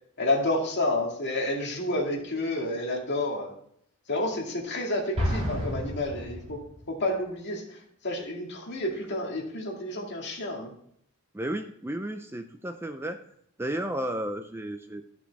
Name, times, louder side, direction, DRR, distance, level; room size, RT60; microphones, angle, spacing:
voice 1, 0.2-3.5 4.1-6.6 6.9-10.7, left 1 dB, 55° left, 0 dB, 2.1 m, -30 dB
Explosion, 5.1-7.0, equal, 30° right, 3.7 m, -31 dB
voice 2, 11.3-13.2 13.6-15.0, right 1 dB, 10° right, 7 dB, 0.5 m, -33 dB
12.5 x 5.9 x 4.0 m, 0.68 s
head